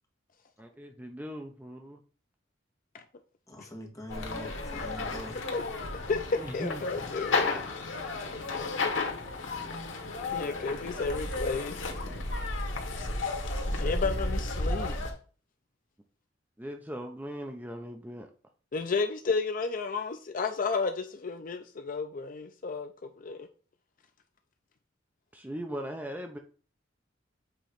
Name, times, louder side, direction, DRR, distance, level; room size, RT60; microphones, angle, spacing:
voice 1, 0.6-2.0 6.4-6.8 16.6-18.3 25.3-26.4, equal, 10° right, 0.6 m, -39 dB
voice 2, 3.5-5.4 10.5-10.6, equal, 15° left, 1.5 m, -43 dB
sound 1, 4.1-15.1, left 3 dB, 90° left, 1.5 m, -33 dB
voice 3, 6.5-7.5 10.3-11.8 13.8-15.1 18.7-23.5, left 4 dB, 45° left, 0.5 m, -32 dB
7.8 x 3.0 x 5.0 m
head